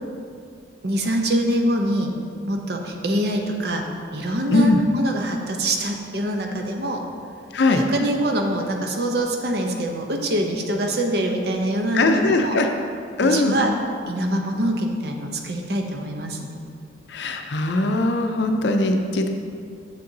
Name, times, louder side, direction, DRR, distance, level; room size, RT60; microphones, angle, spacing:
voice 1, 0.8-2.2 2.5-7.0 7.7-12.6 13.2-13.7 14.1-16.5, right 1 dB, 55° right, 2 dB, 0.6 m, -24 dB
voice 2, 11.9-12.7 13.2-13.5 17.1-19.3, left 2 dB, 65° left, 5 dB, 0.5 m, -20 dB
7.5 x 6.5 x 2.7 m, 2.3 s
head